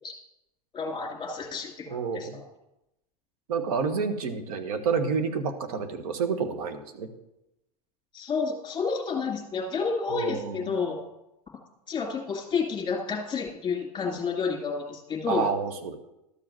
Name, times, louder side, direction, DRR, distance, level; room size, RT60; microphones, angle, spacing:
voice 1, 0.7-2.4 8.1-11.0 11.9-15.5, left 5 dB, 25° left, 2 dB, 2.2 m, -30 dB
voice 2, 1.9-2.4 3.5-7.1 10.1-10.6 15.3-16.0, right 5 dB, 70° right, 6 dB, 1.5 m, -29 dB
12.5 x 4.9 x 7.7 m, 0.89 s
hypercardioid pair, 100°, 20 cm